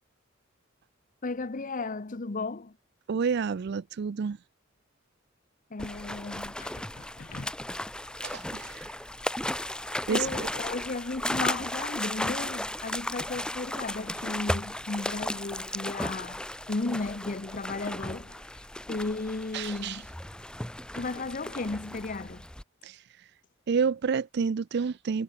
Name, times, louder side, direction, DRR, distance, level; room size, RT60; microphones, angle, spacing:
voice 1, 1.2-2.8 5.7-7.5 10.1-18.4 18.9-20.1 20.9-22.4, left 3 dB, 45° left, 0.8 m, -35 dB
voice 2, 3.1-4.4 8.5-8.6 10.1-10.3 19.5-19.9 23.7-25.2, right 6 dB, 60° right, 0.4 m, -28 dB
sound 1, 5.8-22.6, left 1 dB, 5° left, 0.9 m, -35 dB
head